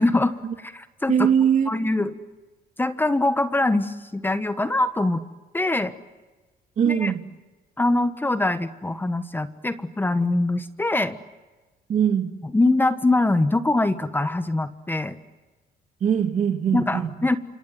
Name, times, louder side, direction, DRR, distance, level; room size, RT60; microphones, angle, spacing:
voice 1, 0.0-0.3 0.6-1.1 1.7-2.1 2.8-5.2 5.5-5.9 6.9-7.1 7.8-11.2 12.5-15.2 16.7-17.4, left 2 dB, 10° left, 11 dB, 1.2 m, -23 dB
voice 2, 1.1-1.7 6.8-7.2 11.9-12.3 16.0-17.1, right 8 dB, 45° right, 7 dB, 2.2 m, -21 dB
28.0 x 27.0 x 7.7 m, 1.2 s
cardioid pair, 110°, 17 cm